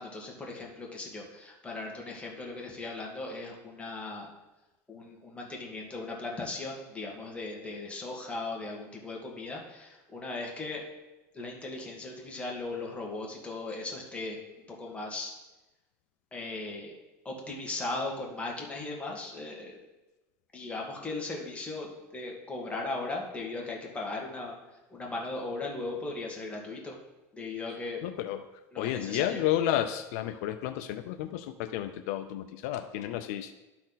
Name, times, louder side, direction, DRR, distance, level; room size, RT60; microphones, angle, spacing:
voice 1, 0.0-4.3 4.9-10.8 11.3-14.4 14.7-15.3 16.3-16.9 17.2-19.8 20.5-24.6 24.9-26.9 27.3-28.0 28.7-29.4, left 2 dB, 15° left, -1 dB, 1.7 m, -37 dB
voice 2, 28.0-28.4 28.8-33.5, left 12 dB, 85° left, 7 dB, 0.5 m, -31 dB
11.5 x 4.3 x 4.1 m, 1.1 s
supercardioid pair, 130°, 8 cm